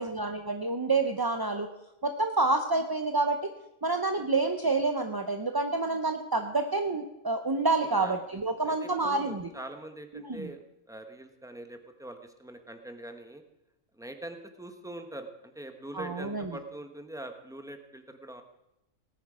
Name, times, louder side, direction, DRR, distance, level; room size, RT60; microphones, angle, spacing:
voice 1, 0.0-1.7 2.0-3.4 3.8-9.5 10.1-10.5 15.9-16.5, right 3 dB, 30° right, 5 dB, 0.4 m, -28 dB
voice 2, 7.8-8.1 8.5-10.6 10.9-13.4 13.9-18.4, right 1 dB, 5° right, 6 dB, 1.0 m, -43 dB
18.5 x 10.0 x 4.9 m, 0.89 s
omnidirectional pair, 1.4 m